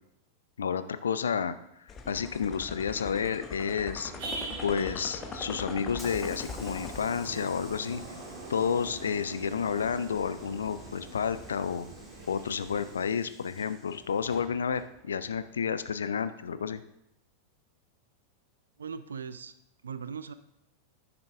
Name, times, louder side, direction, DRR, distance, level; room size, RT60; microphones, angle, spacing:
voice 1, 0.6-1.5 2.1-4.1 4.6-8.0 8.5-11.9 12.3-16.8, left 6 dB, 70° left, 13 dB, 0.4 m, -30 dB
sound 1, 1.9-7.0, left 5 dB, 25° left, 0.8 m, -41 dB
sound 2, 4.0-12.9, right 3 dB, 45° right, 1.6 m, -43 dB
Hiss / Sliding door, 5.3-16.1, left 1 dB, 10° left, 1.4 m, -54 dB
voice 2, 18.8-19.5 19.8-20.3, right 6 dB, 70° right, 13 dB, 0.4 m, -39 dB
10.5 x 5.9 x 3.4 m, 0.80 s
figure-of-eight pair, 90°, 0 cm